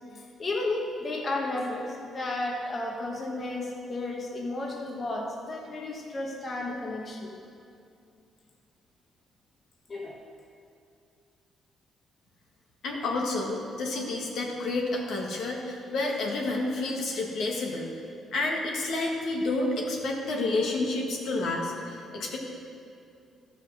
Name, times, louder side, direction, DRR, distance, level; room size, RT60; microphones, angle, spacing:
voice 1, 0.1-7.3 9.9-10.2, left 2 dB, 40° left, 0 dB, 1.4 m, -33 dB
voice 2, 12.8-17.9 18.3-22.4, left 2 dB, 75° left, -1 dB, 1.6 m, -29 dB
13.0 x 5.7 x 6.3 m, 2.5 s
cardioid pair, 90°, 0 cm